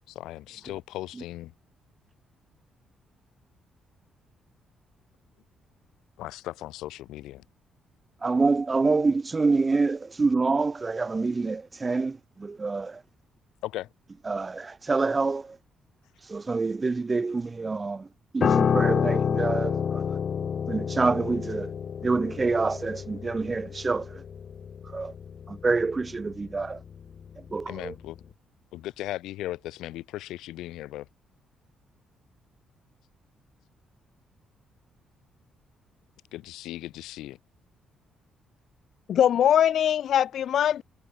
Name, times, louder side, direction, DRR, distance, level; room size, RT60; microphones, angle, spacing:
voice 1, 0.1-1.5 6.2-7.4 13.6-13.9 27.7-28.2 28.7-31.1 36.3-37.4, left 15 dB, 90° left, 3.9 m, -37 dB
voice 2, 8.2-13.0 14.2-15.6 16.3-18.1 18.3-20.0 20.7-21.7 22.0-24.2 24.8-25.1 25.5-26.8 27.5-27.9, right 3 dB, 25° right, 1.5 m, -26 dB
Piano, 18.4-27.8 28.1-28.3, left 7 dB, 50° left, 3.9 m, -29 dB
voice 3, 39.1-40.8, left 10 dB, 65° left, 0.7 m, -22 dB
cardioid pair, 90°, 0 cm